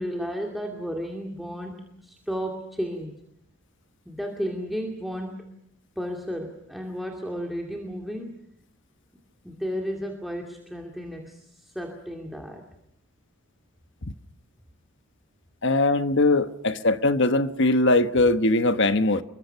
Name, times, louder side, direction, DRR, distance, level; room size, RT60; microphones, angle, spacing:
voice 1, 0.0-3.2 4.1-5.5 6.0-8.3 9.4-12.7, equal, ahead, 2.4 m, -33 dB
voice 2, 15.6-19.2, left 2 dB, 55° left, 1.2 m, -21 dB
28.0 x 23.0 x 5.8 m
head